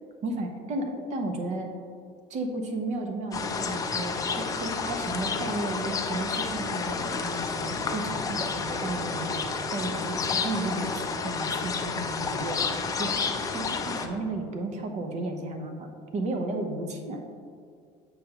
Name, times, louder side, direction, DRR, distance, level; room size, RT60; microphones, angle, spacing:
voice 1, 0.2-1.7 2.3-12.7 13.0-13.2 13.5-17.2, right 2 dB, 50° right, 4 dB, 0.9 m, -33 dB
sound 1, 3.3-14.1, left 4 dB, 25° left, 0.5 m, -30 dB
7.3 x 5.5 x 2.9 m, 2.2 s
supercardioid pair, 110°, 15 cm